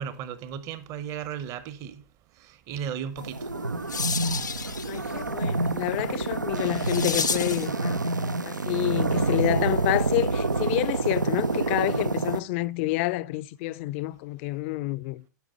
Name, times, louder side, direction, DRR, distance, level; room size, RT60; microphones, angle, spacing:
voice 1, 0.0-2.0 2.4-3.5, right 8 dB, 35° right, 0.8 m, -35 dB
sound 1, 3.2-12.4, right 3 dB, 90° right, 0.5 m, -27 dB
sound 2, 3.3-7.8, left 5 dB, 80° left, 0.6 m, -33 dB
voice 2, 4.8-8.0 8.4-15.3, left 18 dB, 40° left, 0.4 m, -28 dB
11.5 x 5.2 x 4.9 m
figure-of-eight pair, 105°, 10 cm